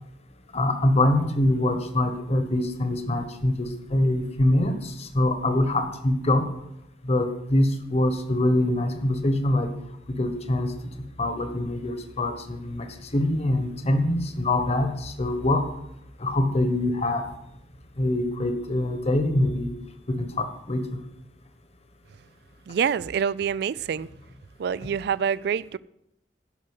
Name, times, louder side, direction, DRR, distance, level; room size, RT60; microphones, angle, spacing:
voice 1, 0.5-6.5 7.0-9.7 10.2-10.7 11.2-15.6 16.2-17.3 18.0-19.7 20.1-21.0, left 1 dB, 40° left, 1.3 m, -24 dB
voice 2, 22.7-24.1 24.6-25.8, right 7 dB, 65° right, 0.3 m, -26 dB
11.0 x 6.6 x 8.0 m
head